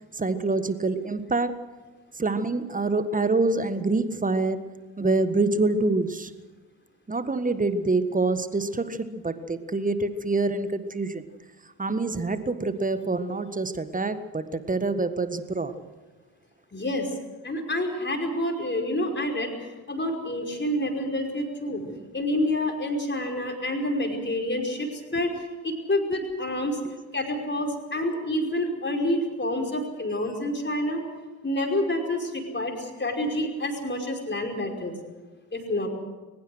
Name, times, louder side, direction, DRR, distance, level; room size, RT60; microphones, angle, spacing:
voice 1, 0.2-1.5 2.2-4.6 5.0-6.3 7.1-11.2 11.8-15.7, right 3 dB, 15° right, 12 dB, 1.6 m, -26 dB
voice 2, 16.7-17.1 17.4-21.8 22.1-26.8 27.1-31.0 31.4-35.0 35.5-35.9, left 1 dB, 20° left, 2 dB, 5.3 m, -28 dB
22.5 x 20.5 x 6.4 m, 1.3 s
figure-of-eight pair, 45°, 49 cm